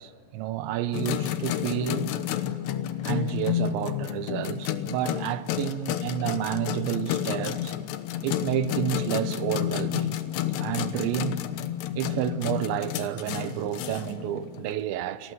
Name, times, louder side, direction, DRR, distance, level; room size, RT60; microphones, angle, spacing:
voice 1, 0.0-2.1 3.0-7.7 8.2-10.2 10.6-11.4 12.0-15.3, right 11 dB, 90° right, 3.3 m, -30 dB
sound 1, 0.9-14.7, left 11 dB, 75° left, 3.2 m, -30 dB
30.0 x 22.5 x 8.0 m
omnidirectional pair, 5.0 m